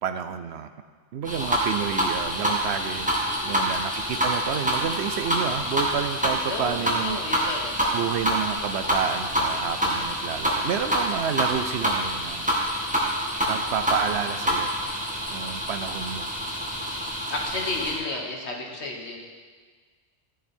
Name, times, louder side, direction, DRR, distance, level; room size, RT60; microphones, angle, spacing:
voice 1, 0.0-0.7 1.1-3.1 3.4-7.2 7.9-12.4 13.5-14.7 15.3-16.2, right 8 dB, 70° right, 10 dB, 0.8 m, -29 dB
sound 1, 1.2-18.0, equal, 5° right, 1.7 m, -27 dB
voice 2, 3.3-3.8 6.5-8.0 17.3-19.2, left 2 dB, 70° left, 0 dB, 1.7 m, -33 dB
13.0 x 7.4 x 4.4 m, 1.5 s
omnidirectional pair, 1.2 m